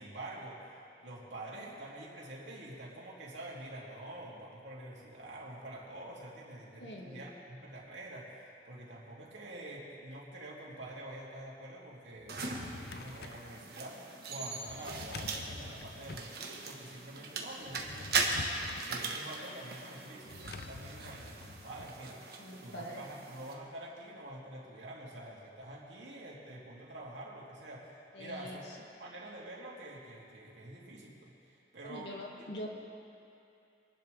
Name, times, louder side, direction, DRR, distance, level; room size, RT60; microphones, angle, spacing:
voice 1, 0.0-18.5 18.9-28.6 29.0-32.1, right 1 dB, 90° right, -4 dB, 2.9 m, -47 dB
voice 2, 6.8-7.3 22.4-23.0 28.1-28.6 31.8-32.7, equal, 80° left, -1 dB, 2.1 m, -44 dB
Drawer open or close, 12.2-13.5 14.7-16.3 17.6-19.0 20.3-21.9, left 3 dB, 60° left, 0.6 m, -47 dB
sound 1, 12.3-23.5, right 3 dB, 55° right, 1.4 m, -39 dB
24.0 x 11.5 x 3.5 m, 2.6 s
head